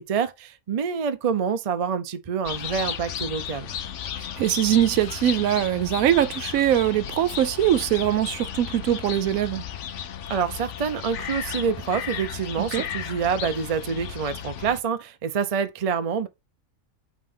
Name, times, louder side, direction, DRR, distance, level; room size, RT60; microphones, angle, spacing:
voice 1, 0.0-3.7 10.3-16.3, right 6 dB, 40° right, 0.5 m, -27 dB
sound 1, 2.4-14.8, left 9 dB, 60° left, 0.9 m, -34 dB
voice 2, 4.2-9.6 12.6-12.8, right 11 dB, 75° right, 1.0 m, -22 dB
5.6 x 3.8 x 5.0 m
omnidirectional pair, 1.5 m